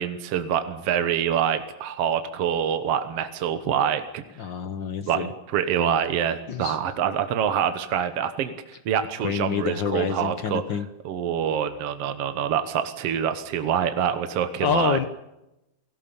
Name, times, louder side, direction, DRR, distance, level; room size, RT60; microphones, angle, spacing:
voice 1, 0.0-4.2 5.1-10.6 11.0-15.0, right 9 dB, 60° right, 9 dB, 2.0 m, -26 dB
voice 2, 4.4-5.3 6.5-6.8 9.2-10.9 14.6-15.1, left 7 dB, 65° left, 11 dB, 1.1 m, -27 dB
28.5 x 18.0 x 7.0 m, 0.91 s
omnidirectional pair, 3.5 m